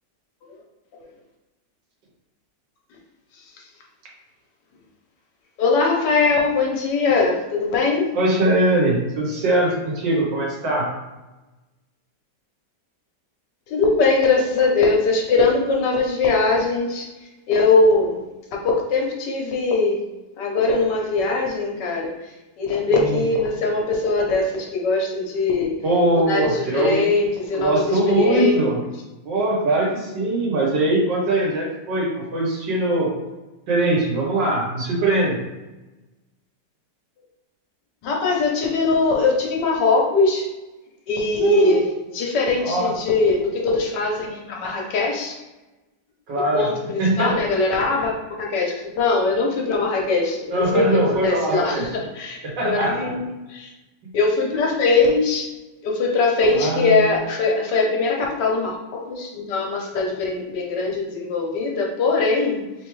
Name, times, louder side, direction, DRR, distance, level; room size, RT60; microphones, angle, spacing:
voice 1, 5.6-8.1 13.7-17.1 17.5-18.2 18.5-20.0 20.4-22.1 22.6-25.7 26.1-28.6 38.0-40.5 41.1-41.8 42.1-45.4 46.3-53.7 54.1-55.5 55.8-62.6, left 3 dB, 75° left, -1 dB, 1.5 m, -21 dB
voice 2, 8.1-10.9 22.9-23.2 25.8-27.0 27.6-28.8 29.2-33.1 33.7-35.4 41.4-41.8 42.6-42.9 46.3-46.7 47.0-47.3 50.5-51.9 52.4-53.1 54.0-54.1 56.5-57.1, right 2 dB, 80° right, -3 dB, 1.8 m, -21 dB
3.8 x 3.4 x 3.1 m, 1.1 s
omnidirectional pair, 1.9 m